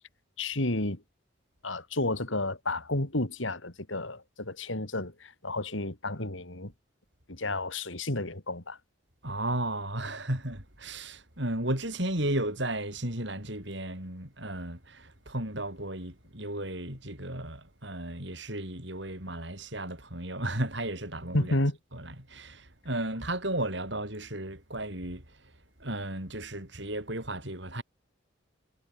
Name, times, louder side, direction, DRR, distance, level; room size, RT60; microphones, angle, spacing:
voice 1, 0.4-1.0 1.6-6.7 7.3-8.8 21.3-21.8, left 2 dB, 70° left, 3.4 m, -31 dB
voice 2, 9.2-21.5 21.9-25.2 25.8-27.8, right 1 dB, 60° right, 7.7 m, -34 dB
head